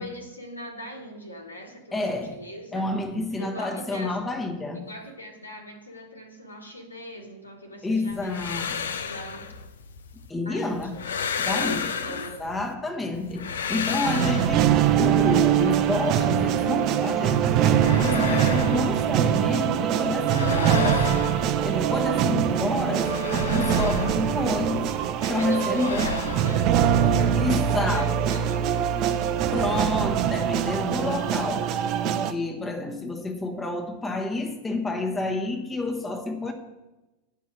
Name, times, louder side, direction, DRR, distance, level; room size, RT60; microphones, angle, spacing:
voice 1, 0.0-2.9 3.3-4.2 4.7-9.5 10.4-12.5 25.2-29.6, equal, 80° left, 1 dB, 1.7 m, -40 dB
voice 2, 1.9-2.3 2.7-4.9 7.8-9.0 10.3-11.0 11.4-14.7 15.0-21.1 21.6-26.1 27.3-28.4 29.5-31.7 32.0-36.5, left 2 dB, 10° left, 3 dB, 1.2 m, -29 dB
sound 1, 8.1-10.3 10.7-12.7 13.1-15.1 17.5-19.7 19.9-22.2 22.5-25.1 25.3-27.7, left 6 dB, 65° left, 0.6 m, -33 dB
sound 2, 14.0-32.3, right 10 dB, 40° right, 0.6 m, -23 dB
10.5 x 5.4 x 6.3 m, 1.1 s
figure-of-eight pair, 90°, 0 cm